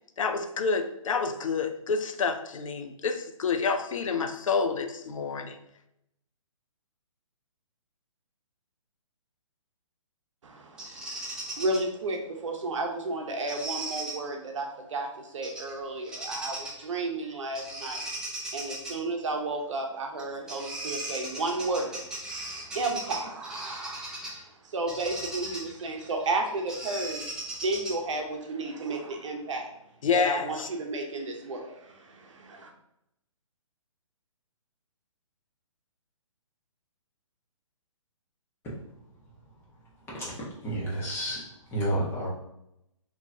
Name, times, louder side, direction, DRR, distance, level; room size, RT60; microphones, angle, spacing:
voice 1, 0.2-5.6 30.0-30.7, left 5 dB, 75° left, 8 dB, 0.4 m, -28 dB
voice 2, 10.4-18.1 18.5-22.0 22.6-24.3 24.6-27.2 27.6-29.7 30.1-32.7, right 2 dB, 65° right, 2 dB, 0.9 m, -33 dB
Bird vocalization bird call bird song, 10.8-11.8 13.5-14.1 15.4-15.7 16.0-16.8 17.5-18.9 20.2-20.3 20.5-24.4 24.9-28.1, right 2 dB, 5° right, 0.5 m, -37 dB
voice 3, 40.1-42.3, right 1 dB, 15° left, -6 dB, 1.1 m, -31 dB
3.7 x 3.0 x 2.7 m, 0.82 s
hypercardioid pair, 145°, 17 cm